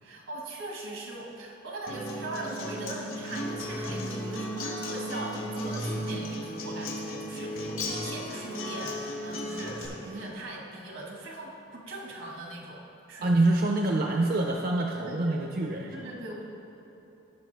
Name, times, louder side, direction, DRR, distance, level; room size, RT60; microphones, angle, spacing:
voice 1, 0.0-12.8 13.1-13.3 15.0-15.4 15.9-16.4, right 2 dB, 80° right, -1 dB, 1.6 m, -40 dB
Acoustic guitar, 1.9-9.9, equal, 90° left, 1.6 m, -35 dB
voice 2, 13.2-16.1, right 2 dB, 50° right, 1 dB, 0.5 m, -26 dB
15.5 x 5.6 x 3.4 m, 3.0 s
head